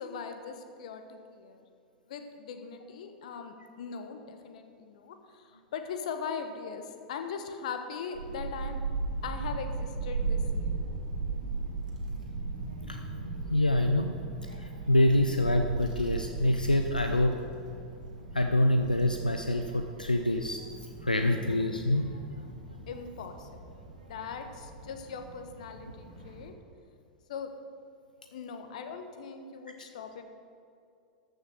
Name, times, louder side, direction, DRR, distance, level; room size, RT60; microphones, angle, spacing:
voice 1, 0.0-1.6 2.1-8.8 9.2-10.7 22.9-23.8 24.1-26.5 27.3-27.5 28.3-30.2, left 6 dB, 55° left, 7 dB, 1.2 m, -40 dB
Child speech kid speaking / Wind, 8.1-26.5, right 3 dB, 70° right, 2.1 m, -37 dB
voice 2, 13.5-14.1 14.6-17.4 18.3-20.7 21.0-22.1, left 1 dB, 85° left, 5 dB, 0.5 m, -26 dB
13.5 x 6.4 x 6.7 m, 2.5 s
figure-of-eight pair, 90°, 4 cm